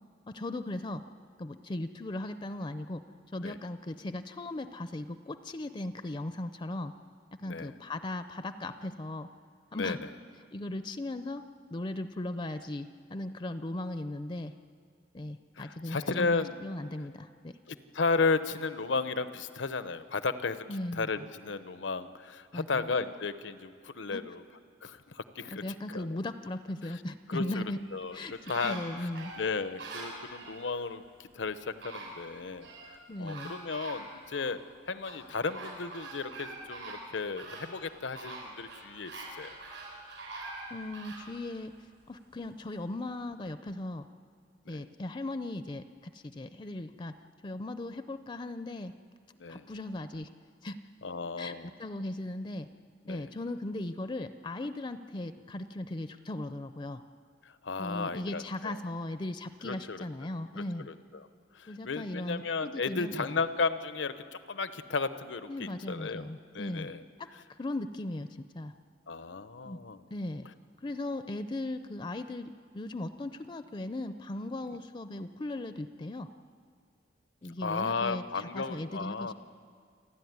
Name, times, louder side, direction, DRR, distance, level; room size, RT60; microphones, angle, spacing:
voice 1, 0.3-1.0 1.4-3.0 3.3-6.9 7.4-9.3 9.7-10.0 10.5-11.4 11.7-14.5 15.1-17.6 20.7-21.1 22.5-22.9 24.1-24.2 25.5-27.8 28.1-29.3 33.1-33.5 40.7-41.7 42.1-44.1 44.7-47.1 47.4-48.9 49.5-50.3 50.6-50.8 51.4-52.7 53.1-57.0 57.8-60.9 61.7-63.4 65.5-66.9 67.2-67.3 67.6-68.7 69.6-69.8 70.1-70.5 70.8-76.3 77.4-79.3, left 1 dB, 25° left, 10 dB, 0.5 m, -38 dB
voice 2, 7.4-7.7 9.7-10.1 15.6-16.5 17.7-24.4 24.8-25.6 25.9-26.1 27.3-27.6 27.9-28.2 28.5-29.1 29.4-31.0 31.3-32.7 33.2-34.6 34.9-39.5 44.7-44.8 49.4-49.7 51.0-51.7 53.1-53.3 57.5-58.8 59.6-60.0 60.9-61.3 61.5-66.2 66.5-67.0 69.1-70.0 74.7-74.8 77.6-79.3, left 4 dB, 80° left, 12 dB, 0.9 m, -34 dB
sound 1, 27.8-30.7 31.4-31.5 31.8-32.9 33.3-34.5 35.0-41.3 41.8-41.9, right 2 dB, 85° right, 6.6 m, -44 dB
29.0 x 11.5 x 9.5 m, 2.1 s
head